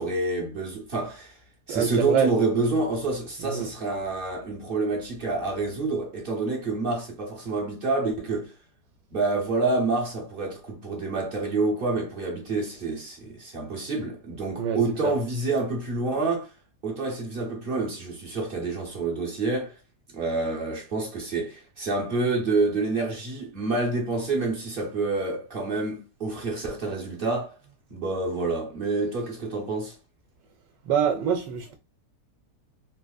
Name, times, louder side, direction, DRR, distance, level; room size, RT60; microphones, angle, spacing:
voice 1, 0.0-1.4 1.7-8.5 9.1-16.5 16.8-19.8 20.1-27.6 27.9-30.0, right 3 dB, 45° right, 0.7 m, -28 dB
voice 2, 1.7-2.3 3.4-3.7 14.6-15.2 30.9-31.8, right 7 dB, 90° right, 1.3 m, -25 dB
3.9 x 2.5 x 2.3 m
omnidirectional pair, 1.9 m